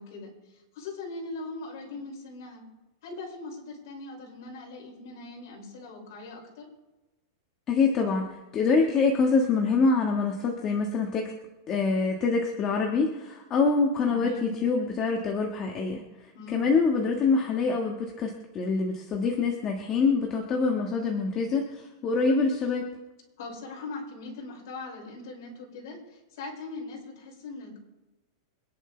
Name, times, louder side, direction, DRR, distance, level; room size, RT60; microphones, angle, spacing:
voice 1, 0.0-2.6 3.0-6.7 14.0-14.5 16.3-16.6 23.4-27.8, left 3 dB, 60° left, -1 dB, 6.1 m, -40 dB
voice 2, 7.7-11.3 11.7-16.0 16.5-22.9, left 4 dB, 25° left, 1 dB, 1.6 m, -25 dB
25.5 x 11.0 x 3.4 m, 1.1 s
supercardioid pair, 165°, 2 cm